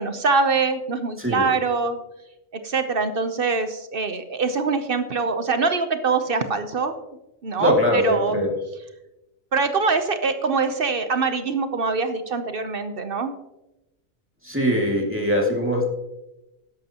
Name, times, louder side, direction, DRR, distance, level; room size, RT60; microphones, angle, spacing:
voice 1, 0.0-2.0 2.6-6.9 7.4-8.4 9.5-13.3, right 4 dB, 50° right, 9 dB, 0.8 m, -24 dB
voice 2, 1.2-1.5 7.6-8.5 14.4-15.9, equal, 10° right, -1 dB, 2.2 m, -22 dB
13.0 x 11.0 x 2.9 m, 0.94 s
omnidirectional pair, 1.4 m